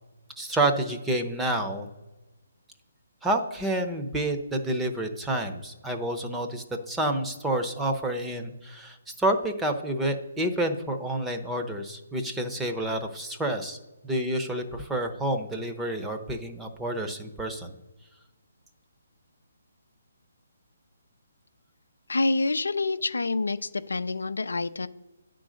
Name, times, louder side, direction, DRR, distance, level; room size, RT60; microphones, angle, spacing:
voice 1, 0.4-1.9 3.2-13.8 14.0-17.7, right 1 dB, 5° right, 3 dB, 0.7 m, -29 dB
voice 2, 22.1-24.9, left 3 dB, 90° left, 12 dB, 0.5 m, -27 dB
9.5 x 3.8 x 6.4 m, 1.1 s
hypercardioid pair, 155°, 0 cm